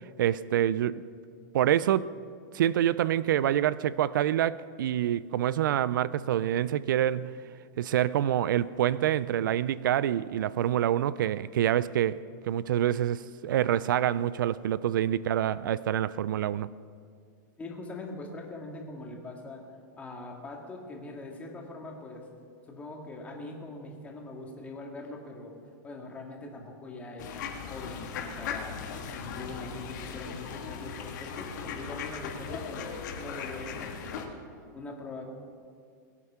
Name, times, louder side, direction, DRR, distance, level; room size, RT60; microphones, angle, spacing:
voice 1, 0.2-1.0 1.5-2.1 2.5-7.4 7.8-16.7, right 11 dB, 90° right, 0.4 m, -26 dB
voice 2, 17.6-19.6 20.0-22.3 22.7-25.5 25.8-28.8 29.1-35.2, left 2 dB, 15° left, 2.1 m, -42 dB
sound 1, 27.2-34.3, left 6 dB, 65° left, 2.0 m, -38 dB
22.0 x 8.4 x 5.7 m
supercardioid pair, 155°, 10 cm